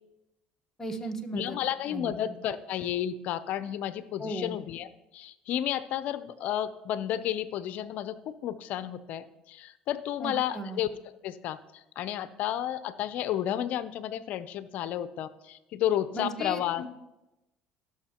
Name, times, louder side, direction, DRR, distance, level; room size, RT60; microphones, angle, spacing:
voice 1, 0.8-1.6 1.9-2.1 4.2-4.6 10.2-10.8 16.1-16.9, right 1 dB, 15° left, 3 dB, 1.2 m, -36 dB
voice 2, 1.3-10.9 11.2-16.8, left 11 dB, 65° left, 14 dB, 0.5 m, -32 dB
17.0 x 6.4 x 2.9 m, 0.95 s
supercardioid pair, 95°, 3 cm